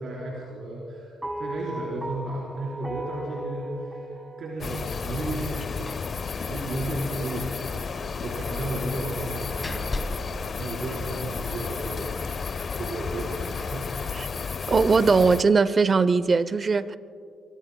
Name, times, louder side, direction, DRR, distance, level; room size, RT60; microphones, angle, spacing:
voice 1, 0.0-6.1 6.5-12.1 12.7-14.3, right 2 dB, 60° right, 4.3 m, -34 dB
sound 1, 1.2-5.6, right 1 dB, 15° right, 2.9 m, -37 dB
sound 2, 4.6-15.4, left 5 dB, 45° left, 0.6 m, -32 dB
Slam, 5.9-6.2 6.5-6.6 6.9-7.0 8.8-11.4, left 2 dB, 25° left, 1.2 m, -37 dB
voice 2, 14.7-17.0, right 4 dB, 35° right, 0.6 m, -20 dB
24.5 x 24.0 x 2.3 m
cardioid pair, 90°, 0 cm